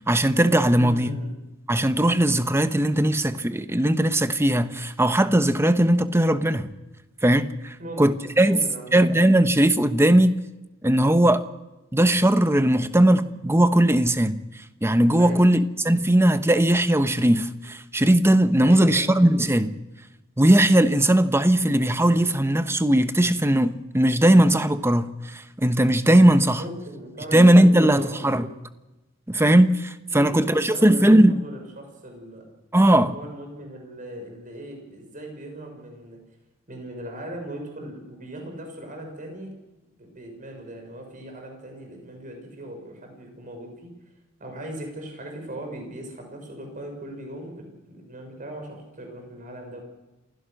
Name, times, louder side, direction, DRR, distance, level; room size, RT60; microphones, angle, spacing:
voice 1, 0.1-1.1 1.7-6.7 7.2-8.6 8.9-10.3 10.8-11.4 11.9-14.4 14.8-15.6 15.8-19.7 20.4-26.6 27.3-28.5 29.3-31.4 32.7-33.1, right 1 dB, 15° right, 1.0 m, -19 dB
voice 2, 0.7-1.3 7.8-8.0 8.4-9.0 15.2-15.5 18.6-19.1 26.6-28.5 30.1-32.4 33.0-36.2 36.7-39.5 40.0-43.9 44.4-49.8, right 1 dB, 40° right, 6.2 m, -38 dB
28.0 x 16.5 x 6.5 m
head